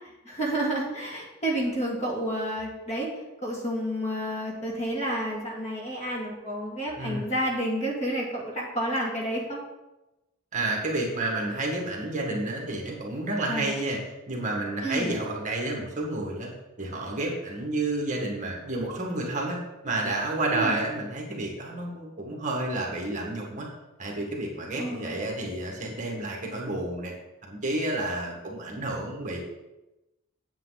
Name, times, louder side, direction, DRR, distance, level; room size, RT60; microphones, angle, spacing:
voice 1, 0.2-3.1 3.4-9.6 13.5-13.7 14.8-15.2 20.5-20.8 24.8-25.3, right 1 dB, 30° left, -3 dB, 2.3 m, -30 dB
voice 2, 10.5-14.0 14.3-16.5 16.8-23.7 24.0-27.1 27.4-29.4, right 2 dB, 35° right, -1 dB, 1.9 m, -30 dB
9.1 x 8.4 x 4.1 m, 1.0 s
head